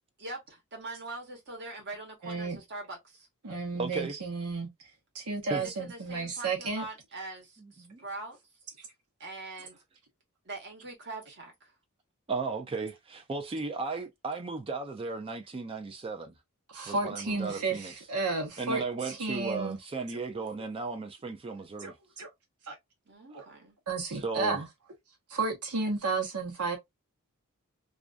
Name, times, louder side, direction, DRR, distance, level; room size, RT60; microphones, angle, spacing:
voice 1, 0.2-3.3 5.5-8.4 9.2-9.8 10.4-11.7 17.3-17.7 23.1-23.8, right 2 dB, 50° right, 1.0 m, -43 dB
voice 2, 2.2-2.6 3.4-4.7 5.1-6.9 16.7-19.8 21.8-22.3 22.7-22.8 23.3-23.4 23.9-24.7 25.3-26.8, right 3 dB, 90° right, 0.9 m, -32 dB
voice 3, 3.8-4.2 5.5-5.6 7.8-8.0 12.3-16.3 16.9-17.9 18.6-21.9 24.2-24.6, right 4 dB, 25° right, 0.4 m, -35 dB
2.4 x 2.2 x 2.4 m
head